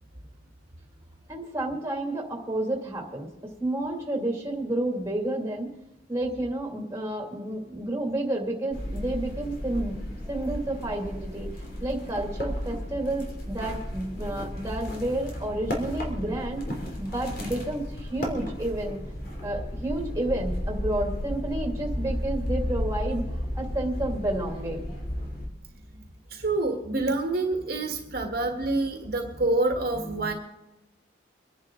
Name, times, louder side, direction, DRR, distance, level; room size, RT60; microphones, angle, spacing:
voice 1, 1.3-3.3 3.6-5.8 6.1-10.0 10.3-16.6 17.0-19.0 19.4-23.2 23.5-24.9, right 1 dB, 15° right, 1 dB, 2.4 m, -30 dB
sound 1, 8.7-25.5, equal, 50° left, 3.2 m, -33 dB
voice 2, 26.3-30.3, right 2 dB, 50° right, 3 dB, 1.7 m, -27 dB
25.0 x 10.5 x 3.8 m, 0.96 s
head